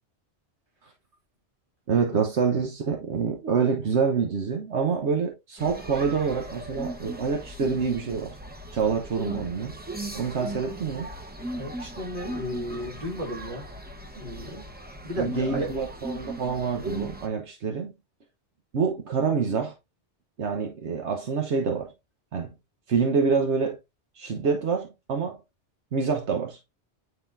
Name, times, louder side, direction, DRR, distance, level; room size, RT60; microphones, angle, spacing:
voice 1, 1.9-8.3 8.7-9.8 10.1-11.1 15.2-17.9 18.7-19.7 20.4-21.9 22.3-22.5 22.9-23.8 24.1-25.4 25.9-26.6, right 5 dB, 75° right, 1.3 m, -26 dB
sound 1, 5.6-17.3, right 1 dB, 10° right, 0.8 m, -38 dB
voice 2, 11.5-13.7 14.2-14.6 15.0-15.7, equal, 50° right, 2.2 m, -34 dB
9.5 x 3.9 x 2.6 m
omnidirectional pair, 1.2 m